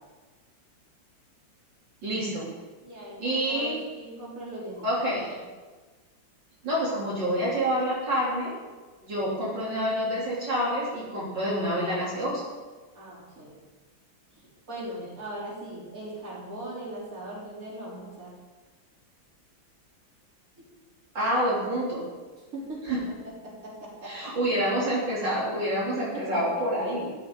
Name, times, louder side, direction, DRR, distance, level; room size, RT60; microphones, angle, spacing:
voice 1, 2.0-2.5 3.2-3.8 4.8-5.3 6.6-8.5 9.0-12.4 21.1-22.1 22.8-23.0 24.0-27.1, equal, 65° right, -7 dB, 4.2 m, -27 dB
voice 2, 2.8-4.8 12.9-13.5 14.7-18.3 20.6-20.7 22.5-22.8 23.4-24.1 24.4-24.6 26.0-26.4, right 1 dB, 45° right, -6 dB, 4.4 m, -39 dB
15.0 x 14.0 x 4.0 m, 1.3 s
omnidirectional pair, 2.1 m